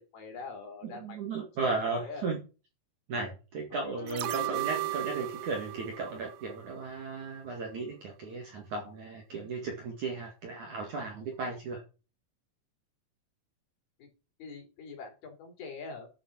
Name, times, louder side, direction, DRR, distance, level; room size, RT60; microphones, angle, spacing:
voice 1, 0.0-1.2 1.6-2.2 3.1-3.3 3.7-4.1 4.6-4.7 10.6-10.9 14.0-14.1 14.4-16.1, left 4 dB, 55° left, 2 dB, 5.2 m, -44 dB
voice 2, 0.8-2.4 3.1-11.8, right 4 dB, 50° right, 2 dB, 2.7 m, -35 dB
sound 1, 3.9-7.2 7.5-7.7, left 5 dB, 25° left, 1.7 m, -48 dB
sound 2, 4.1-7.2 7.6-7.7, right 19 dB, 80° right, 2.6 m, -36 dB
10.5 x 7.3 x 6.2 m, 0.32 s
omnidirectional pair, 5.6 m